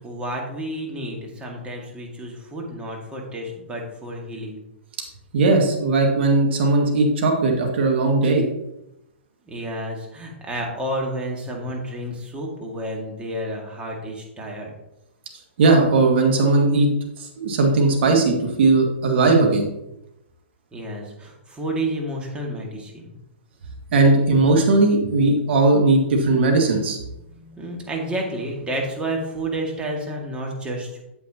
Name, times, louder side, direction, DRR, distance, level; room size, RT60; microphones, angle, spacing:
voice 1, 0.0-4.6 9.5-14.7 20.7-23.1 27.2-31.0, right 1 dB, 15° right, 0 dB, 1.9 m, -30 dB
voice 2, 5.3-8.5 15.6-16.9 17.2-19.7 23.9-27.0, right 3 dB, 60° right, 1 dB, 2.0 m, -18 dB
8.4 x 8.0 x 2.9 m, 0.87 s
hypercardioid pair, 130°, 7 cm